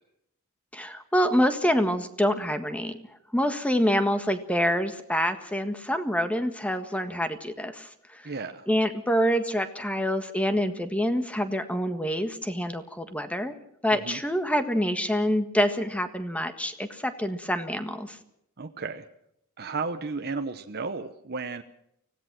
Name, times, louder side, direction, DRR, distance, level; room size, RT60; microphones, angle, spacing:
voice 1, 0.7-2.9 3.3-8.2 8.7-13.5 13.8-18.2, equal, 5° left, 8 dB, 1.6 m, -26 dB
voice 2, 8.2-8.7 13.9-14.2 18.6-19.0 19.6-21.6, right 4 dB, 45° right, 6 dB, 1.0 m, -33 dB
25.0 x 17.0 x 6.2 m, 0.75 s
head